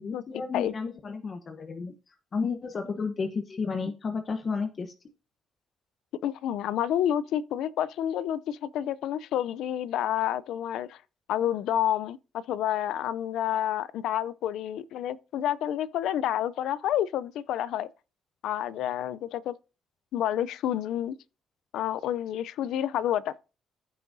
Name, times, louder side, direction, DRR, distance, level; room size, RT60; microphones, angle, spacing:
voice 1, 0.0-4.9, left 5 dB, 45° left, 1.0 m, -32 dB
voice 2, 6.2-11.0 11.3-17.9 18.4-19.5 20.1-21.2 21.7-23.4, left 11 dB, 85° left, 0.5 m, -29 dB
14.5 x 6.2 x 2.7 m
cardioid pair, 90°, 0 cm